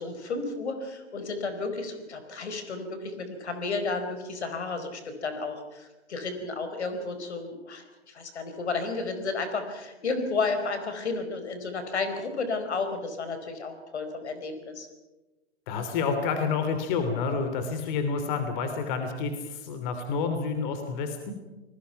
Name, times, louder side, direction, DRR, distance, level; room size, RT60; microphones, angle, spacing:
voice 1, 0.0-14.9, left 3 dB, 75° left, 8 dB, 4.8 m, -32 dB
voice 2, 15.7-21.3, left 5 dB, 45° left, 7 dB, 3.1 m, -29 dB
29.0 x 20.5 x 5.8 m, 1.1 s
hypercardioid pair, 125°, 34 cm